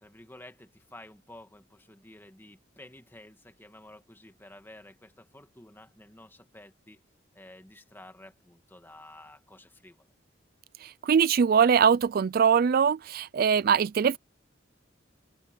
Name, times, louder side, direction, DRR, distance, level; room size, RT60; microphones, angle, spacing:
voice 1, 0.0-7.0 7.3-10.1, left 1 dB, 10° left, 1.9 m, -51 dB
voice 2, 10.8-14.2, right 7 dB, 50° right, 0.3 m, -22 dB
open air
head